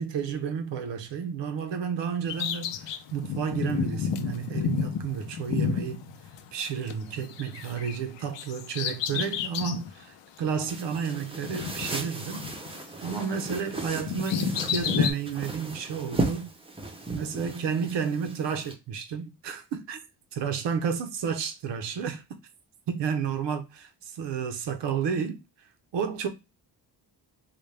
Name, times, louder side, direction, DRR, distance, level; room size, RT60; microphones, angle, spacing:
voice 1, 0.0-6.0 6.5-12.5 13.0-16.5 17.1-20.0 20.3-22.2 22.9-25.4 25.9-26.3, right 7 dB, 90° right, 0.8 m, -31 dB
Bird vocalization bird call bird song, 2.3-6.9 7.2-9.9 10.4-10.5 11.4-12.8 13.1-15.1, left 8 dB, 90° left, 0.6 m, -31 dB
sound 1, 10.7-18.7, right 2 dB, 15° right, 0.5 m, -36 dB
4.0 x 2.2 x 3.3 m
wide cardioid pair, 135°, 42 cm